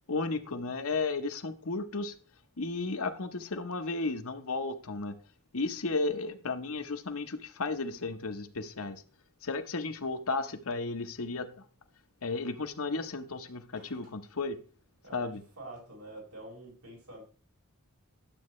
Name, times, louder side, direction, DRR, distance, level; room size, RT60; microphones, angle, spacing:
voice 1, 0.1-2.1 2.6-5.1 5.5-9.0 9.4-11.6 12.2-14.6 15.1-15.4, left 3 dB, 65° left, 1.1 m, -34 dB
voice 2, 13.8-14.1 15.0-17.2, right 1 dB, 80° right, 5.2 m, -47 dB
12.0 x 7.9 x 3.2 m
head